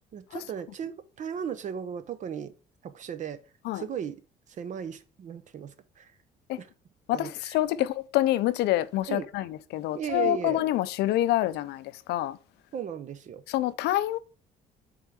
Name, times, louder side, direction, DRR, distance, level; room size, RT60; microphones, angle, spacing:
voice 1, 0.1-2.5 2.8-3.4 3.7-4.2 4.5-6.1 6.6-6.7 7.1-7.6 9.1-9.3 9.9-10.6 12.7-13.4, right 8 dB, 45° right, 0.6 m, -36 dB
voice 2, 7.1-12.4 13.5-14.2, left 14 dB, 80° left, 0.5 m, -27 dB
5.5 x 3.8 x 4.7 m
cardioid pair, 110°, 17 cm